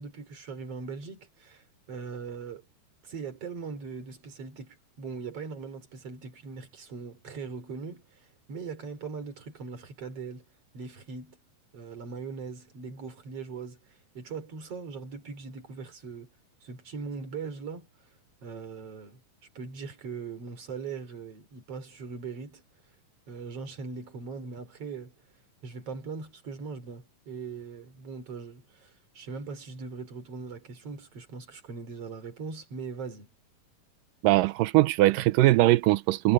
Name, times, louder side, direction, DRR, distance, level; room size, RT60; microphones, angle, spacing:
voice 1, 0.0-2.6 3.0-10.4 10.7-11.4 11.7-16.3 16.6-17.9 18.4-19.2 19.5-22.6 23.3-25.1 25.6-33.3, right 5 dB, 45° right, 4.5 m, -40 dB
voice 2, 34.2-36.3, right 17 dB, 90° right, 2.3 m, -21 dB
omnidirectional pair, 3.7 m